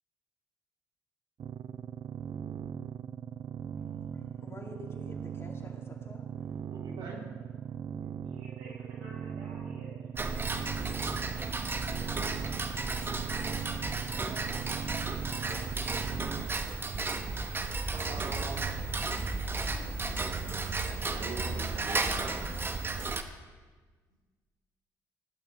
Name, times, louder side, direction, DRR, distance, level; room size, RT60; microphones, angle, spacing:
sound 1, 1.4-16.5, right 8 dB, 50° right, 0.4 m, -40 dB
voice 1, 3.8-6.6, left 3 dB, 30° left, 1 dB, 2.3 m, -50 dB
voice 2, 6.7-7.2 11.4-11.7 12.9-13.1 17.8-18.8 19.6-20.2 21.1-22.6, right 3 dB, 70° right, -2 dB, 3.1 m, -43 dB
voice 3, 8.2-11.2, right 1 dB, 90° right, -4 dB, 4.4 m, -52 dB
Tick-tock, 10.2-23.2, right 3 dB, 30° right, 1.0 m, -33 dB
16.5 x 11.0 x 3.2 m, 1.4 s
supercardioid pair, 60°, 8 cm